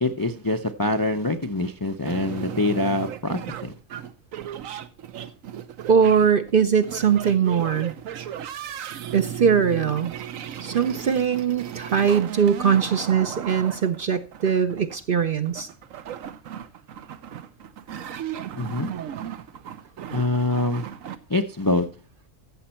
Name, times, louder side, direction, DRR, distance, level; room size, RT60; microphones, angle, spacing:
voice 1, 0.0-3.7 18.6-18.9 20.1-20.9 21.3-21.9, left 2 dB, 25° left, 6 dB, 0.4 m, -25 dB
sound 1, 2.1-21.2, right 10 dB, 80° right, 1.1 m, -36 dB
voice 2, 5.9-7.9 9.1-10.1 10.6-15.7, right 7 dB, 50° right, 9 dB, 0.7 m, -21 dB
15.0 x 7.1 x 4.3 m, 0.33 s
omnidirectional pair, 1.4 m